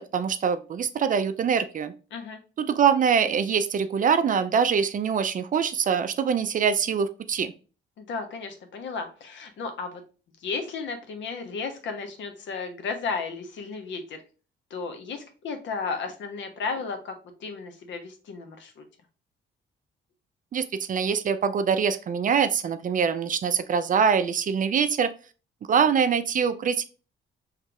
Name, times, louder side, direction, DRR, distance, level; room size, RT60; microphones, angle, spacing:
voice 1, 0.0-1.9 2.6-7.5 20.5-25.1 25.7-26.9, right 7 dB, 40° right, 11 dB, 0.4 m, -24 dB
voice 2, 8.0-10.0 10.4-14.2 14.7-18.9, left 4 dB, 70° left, 6 dB, 0.9 m, -34 dB
5.1 x 3.2 x 2.3 m, 0.35 s
cardioid pair, 90°, 20 cm